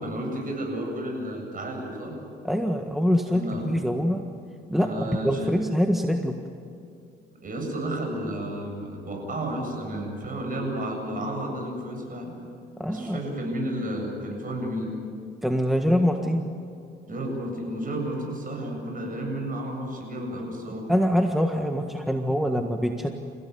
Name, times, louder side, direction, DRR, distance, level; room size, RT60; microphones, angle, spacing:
voice 1, 0.0-2.2 3.3-3.7 4.8-5.5 7.4-12.3 12.9-14.9 17.1-20.9, right 1 dB, 45° right, 2 dB, 8.0 m, -32 dB
voice 2, 2.4-4.2 4.7-6.4 12.8-13.2 15.4-16.5 20.9-23.1, equal, ahead, 3 dB, 1.6 m, -24 dB
29.5 x 16.5 x 9.7 m, 2.3 s
cardioid pair, 90°, 20 cm